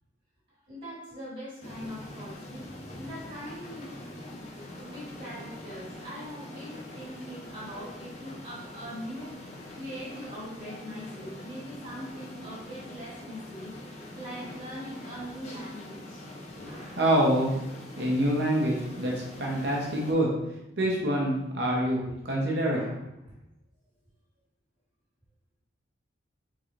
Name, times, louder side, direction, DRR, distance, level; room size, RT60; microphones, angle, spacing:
voice 1, 0.7-2.7 3.0-3.9 4.7-9.4 9.7-13.7 14.1-16.2 16.6-17.0 22.7-22.9 23.2-23.3, equal, 40° right, -8 dB, 1.5 m, -41 dB
sound 1, 1.6-20.1, left 1 dB, 35° left, 0.8 m, -44 dB
voice 2, 17.0-17.6 18.0-20.3 20.8-22.9, right 1 dB, 60° right, -2 dB, 1.0 m, -26 dB
3.8 x 3.8 x 3.2 m, 0.87 s
head